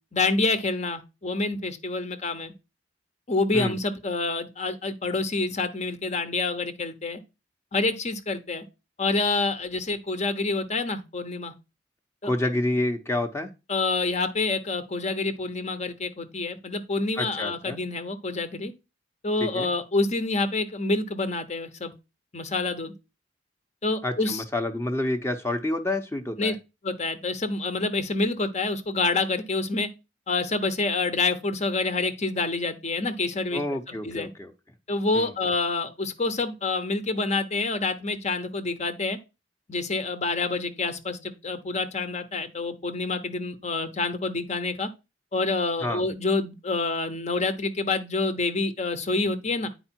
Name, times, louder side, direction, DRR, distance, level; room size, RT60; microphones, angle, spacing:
voice 1, 0.1-2.5 3.3-7.2 7.7-8.6 9.0-11.5 12.2-12.3 13.7-18.7 19.2-21.9 22.3-22.9 23.8-24.4 26.4-26.5 26.8-29.9 30.3-33.6 33.9-34.3 34.9-39.2 39.7-44.9 45.3-49.7, left 3 dB, 40° left, 1.0 m, -27 dB
voice 2, 12.2-13.5 17.2-17.8 19.4-19.7 24.0-26.6 33.5-34.5 35.1-35.3 45.8-46.0, left 1 dB, 15° left, 0.9 m, -28 dB
9.9 x 4.8 x 4.5 m
head